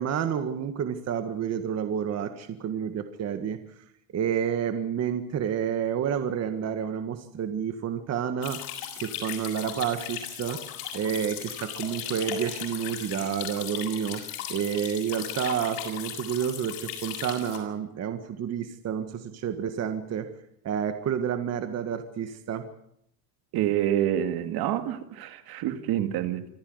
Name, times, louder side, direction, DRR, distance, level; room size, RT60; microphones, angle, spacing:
voice 1, 0.0-3.6 4.1-8.6 9.0-10.6 10.9-14.2 14.5-20.3 20.6-22.7, right 8 dB, 40° right, 8 dB, 1.8 m, -29 dB
sound 1, 8.4-17.6, left 10 dB, 85° left, 6.9 m, -37 dB
voice 2, 23.5-26.5, right 11 dB, 60° right, 9 dB, 2.4 m, -27 dB
26.0 x 15.0 x 8.0 m, 0.75 s
cardioid pair, 140°, 41 cm